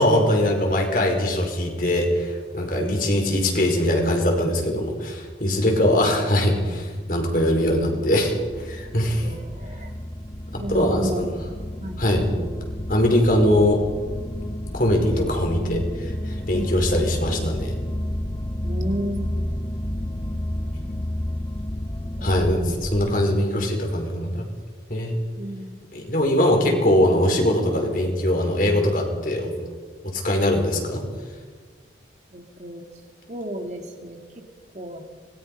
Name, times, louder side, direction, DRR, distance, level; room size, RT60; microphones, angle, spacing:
voice 1, 0.0-9.3 10.5-11.3 12.0-12.3 12.9-13.8 14.7-17.8 22.2-24.4 24.9-25.2 25.9-29.5 30.0-31.0, left 1 dB, 50° left, 2 dB, 5.1 m, -22 dB
voice 2, 2.8-3.2 5.6-5.7 9.2-9.9 10.6-11.3 11.8-12.0 16.5-16.9 18.6-19.5 22.2-22.3 25.4-25.8 32.3-32.9 33.3-34.4 34.7-35.0, equal, 40° right, 3 dB, 2.3 m, -33 dB
sound 1, 6.8-23.2, left 1 dB, 20° left, 0.8 m, -31 dB
26.0 x 22.0 x 5.6 m, 1.5 s
head